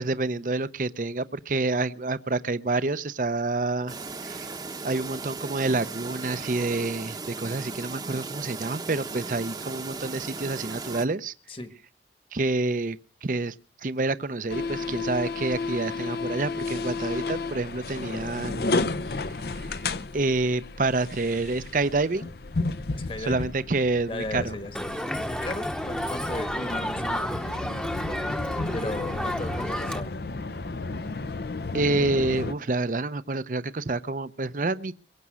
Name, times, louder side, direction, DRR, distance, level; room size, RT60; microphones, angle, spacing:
voice 1, 0.0-3.9 4.2-4.5 4.8-11.3 12.3-13.0 13.2-13.5 13.8-18.9 20.1-22.3 23.3-24.5 31.7-34.9, right 3 dB, 50° right, 0.6 m, -28 dB
Chirp tweet, 3.9-11.1, right 4 dB, 25° right, 0.9 m, -37 dB
sound 1, 14.5-32.5, left 3 dB, 65° left, 0.7 m, -33 dB
voice 2, 22.9-23.5 24.1-30.1, left 2 dB, 30° left, 1.3 m, -37 dB
Crowd, 24.7-30.0, equal, 5° left, 0.9 m, -31 dB
22.5 x 8.3 x 6.2 m
head